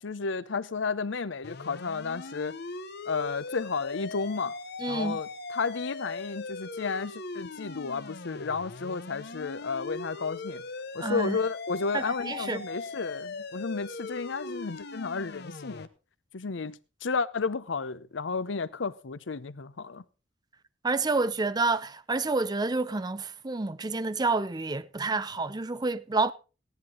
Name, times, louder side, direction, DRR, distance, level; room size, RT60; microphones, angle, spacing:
voice 1, 0.0-2.6 3.1-4.5 4.9-10.6 10.9-15.9 16.3-20.0, left 4 dB, 75° left, 0.7 m, -32 dB
sound 1, 1.4-15.9, left 4 dB, 55° left, 1.0 m, -40 dB
voice 2, 4.8-5.2 11.0-11.4 11.9-12.6 20.8-26.3, right 3 dB, 20° right, 0.5 m, -29 dB
16.0 x 10.5 x 3.8 m
head